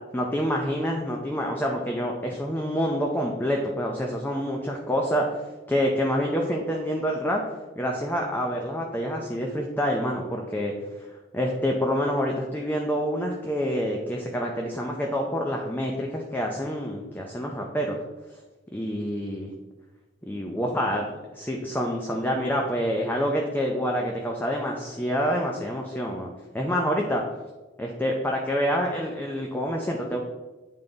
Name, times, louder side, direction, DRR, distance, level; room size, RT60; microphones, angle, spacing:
voice 1, 0.1-5.2 5.7-7.4 7.8-10.7 11.3-18.0 18.7-19.5 20.2-21.0 21.3-27.2 27.8-30.2, equal, 10° left, 0 dB, 0.6 m, -27 dB
8.7 x 3.7 x 3.9 m, 1.2 s
head